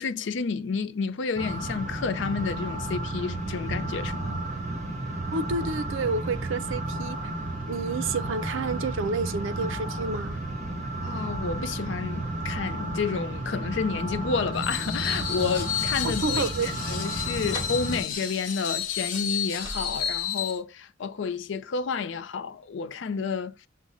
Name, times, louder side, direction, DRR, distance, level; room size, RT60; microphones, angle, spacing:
voice 1, 0.0-4.4 11.0-23.7, left 5 dB, 65° left, 0.4 m, -30 dB
sound 1, 1.4-18.0, right 2 dB, 40° right, 1.1 m, -32 dB
voice 2, 5.3-7.2 7.7-10.4 16.0-16.7, right 3 dB, 80° right, 0.5 m, -29 dB
Screech, 14.5-20.6, left 8 dB, 45° left, 0.9 m, -31 dB
sound 2, 15.2-20.3, left 1 dB, 25° left, 1.3 m, -45 dB
6.3 x 2.1 x 3.6 m
head